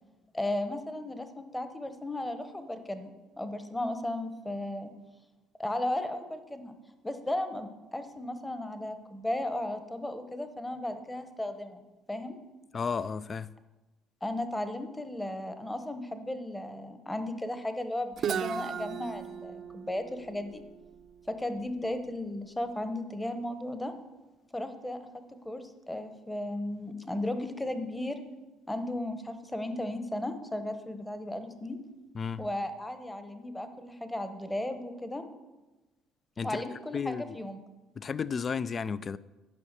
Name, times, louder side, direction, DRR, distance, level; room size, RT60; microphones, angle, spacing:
voice 1, 0.3-4.9 5.6-6.8 7.0-12.4 14.2-20.6 21.3-23.9 24.5-28.2 28.7-31.8 32.4-35.3 36.4-37.6, left 1 dB, 10° left, 1.0 m, -35 dB
voice 2, 12.7-13.5 32.1-32.5 36.4-36.6 36.9-37.4 38.0-39.2, left 6 dB, 35° left, 0.4 m, -33 dB
Guitar, 18.2-21.9, right 8 dB, 55° right, 0.6 m, -37 dB
10.5 x 5.4 x 6.6 m
supercardioid pair, 90°, 0 cm